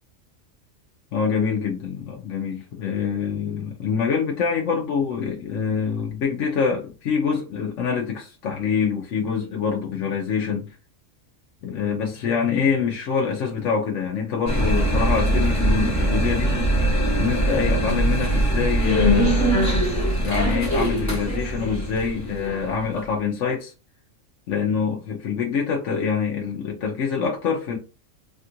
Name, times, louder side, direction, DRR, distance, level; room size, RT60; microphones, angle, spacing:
voice 1, 1.1-10.7 11.6-16.6 17.1-19.8 20.2-23.7 24.5-27.8, left 6 dB, 70° left, 1.0 m, -25 dB
sound 1, 14.5-23.1, right 1 dB, 15° left, 1.0 m, -22 dB
3.5 x 2.4 x 2.7 m
omnidirectional pair, 1.4 m